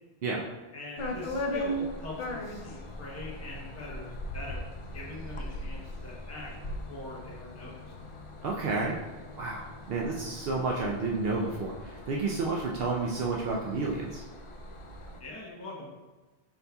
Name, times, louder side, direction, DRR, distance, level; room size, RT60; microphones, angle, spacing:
voice 1, 0.7-6.5 6.9-7.8 15.2-15.9, left 2 dB, 15° left, -5 dB, 0.8 m, -43 dB
sound 1, 1.0-15.2, left 1 dB, 60° left, 0.3 m, -39 dB
voice 2, 8.4-9.0 9.4-14.2, right 3 dB, 70° right, -2 dB, 0.7 m, -31 dB
5.8 x 4.0 x 2.3 m, 1.2 s
omnidirectional pair, 1.1 m